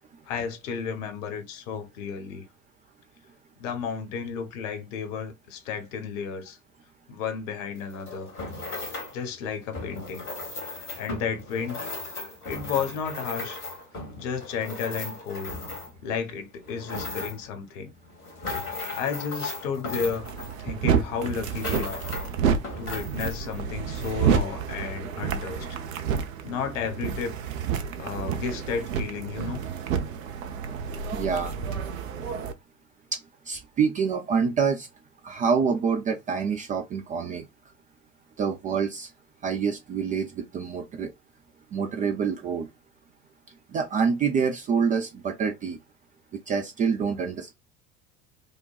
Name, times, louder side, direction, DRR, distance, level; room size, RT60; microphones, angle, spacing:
voice 1, 0.2-2.4 3.6-6.6 7.1-8.3 9.1-10.3 10.7-11.8 12.4-13.6 14.2-15.6 16.0-17.9 18.9-20.3 20.6-22.1 22.8-25.8 26.4-27.3 28.0-29.6, left 6 dB, 55° left, 1.2 m, -32 dB
sound 1, 7.8-9.2 9.7-16.1 16.5-17.5 18.0-20.9 21.2-22.3 22.6-23.6 24.0-24.1, left 3 dB, 75° left, 2.0 m, -37 dB
sound 2, 19.9-32.5, right 7 dB, 60° right, 0.8 m, -29 dB
voice 2, 31.1-31.5 33.1-34.9 35.2-37.4 38.4-39.1 39.4-41.1 41.7-42.7 43.7-45.8 46.5-47.5, right 6 dB, 20° right, 0.4 m, -26 dB
5.2 x 2.2 x 2.4 m
figure-of-eight pair, 75°, 45 cm